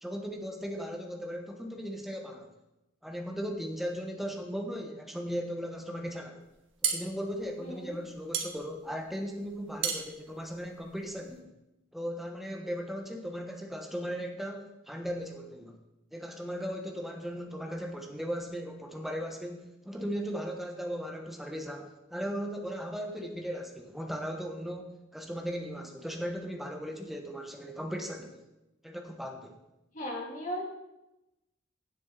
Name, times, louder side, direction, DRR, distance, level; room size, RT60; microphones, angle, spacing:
voice 1, 0.0-2.5 3.0-6.4 6.8-11.5 11.9-15.8 16.1-28.4 28.8-29.6, equal, ahead, 2 dB, 1.2 m, -37 dB
sound 1, 6.5-11.4, right 7 dB, 65° right, 1.4 m, -35 dB
voice 2, 7.6-8.0 29.9-30.6, equal, 40° left, -2 dB, 2.8 m, -36 dB
16.0 x 7.5 x 4.0 m, 0.95 s
head